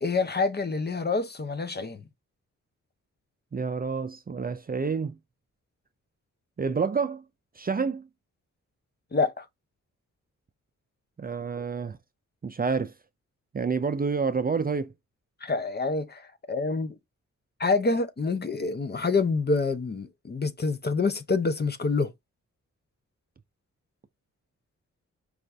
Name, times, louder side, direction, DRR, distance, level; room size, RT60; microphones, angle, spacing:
voice 1, 0.0-2.0 9.1-9.5 15.4-16.9 17.6-22.1, left 4 dB, 35° left, 0.7 m, -27 dB
voice 2, 3.5-5.2 6.6-7.2 7.6-8.1 11.2-12.0 12.4-12.9 13.5-14.9, right 5 dB, 30° right, 0.5 m, -28 dB
4.9 x 2.5 x 3.2 m
cardioid pair, 75°, 31 cm